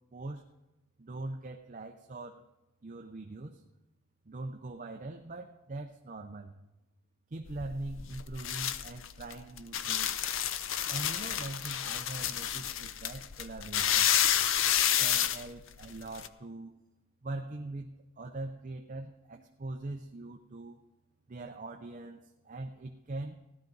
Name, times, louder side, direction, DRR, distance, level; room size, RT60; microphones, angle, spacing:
voice 1, 0.1-0.4 1.0-2.4 2.8-3.6 4.3-6.6 7.3-10.3 10.9-14.1 15.0-16.8 17.2-20.8 21.3-23.4, right 2 dB, 35° right, 3 dB, 0.5 m, -42 dB
sound 1, 7.5-16.3, left 10 dB, 60° left, 0.5 m, -30 dB
16.5 x 11.5 x 3.9 m, 1.0 s
head